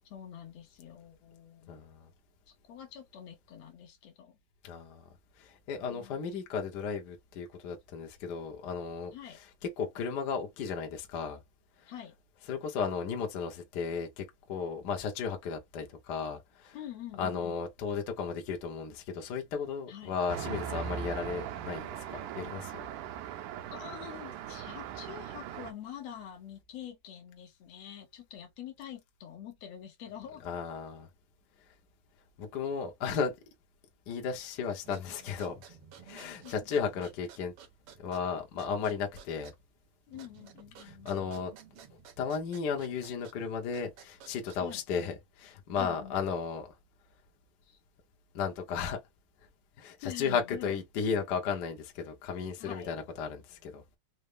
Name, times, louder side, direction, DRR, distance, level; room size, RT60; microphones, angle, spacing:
voice 1, 0.1-1.8 2.5-4.4 5.9-6.3 9.1-9.4 11.9-12.2 16.7-17.6 19.9-20.2 23.7-30.5 36.4-36.8 40.1-41.5 44.6-44.8 45.8-46.1 47.6-47.8 50.0-50.7 52.6-53.0, left 10 dB, 65° left, 1.9 m, -46 dB
voice 2, 1.7-2.1 4.6-5.0 5.4-11.4 11.8-12.0 12.4-16.9 17.2-22.8 30.4-31.1 32.4-33.4 34.1-35.6 36.0-37.5 38.0-39.5 40.8-41.5 42.2-46.7 48.3-49.0 49.8-53.8, left 6 dB, 85° left, 0.9 m, -35 dB
Traffic noise roadway noise, 20.3-25.7, right 9 dB, 85° right, 2.2 m, -39 dB
sound 1, 34.8-44.9, right 8 dB, 60° right, 1.7 m, -54 dB
5.3 x 2.1 x 3.3 m
omnidirectional pair, 3.5 m